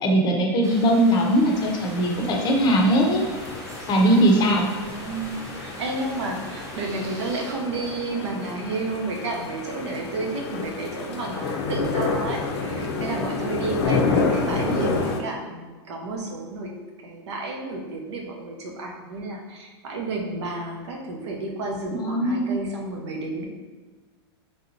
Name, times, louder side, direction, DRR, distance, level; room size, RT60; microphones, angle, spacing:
voice 1, 0.0-3.2 3.9-4.7 22.0-22.6, right 1 dB, 30° left, 1 dB, 0.6 m, -20 dB
sound 1, 0.6-7.5, right 1 dB, 20° right, 0.6 m, -41 dB
sound 2, 1.5-15.2, left 4 dB, 80° left, 0.5 m, -29 dB
voice 2, 4.8-16.7 17.0-23.5, right 2 dB, 80° right, 0 dB, 0.7 m, -31 dB
3.3 x 2.7 x 2.7 m, 1.3 s
hypercardioid pair, 125°, 14 cm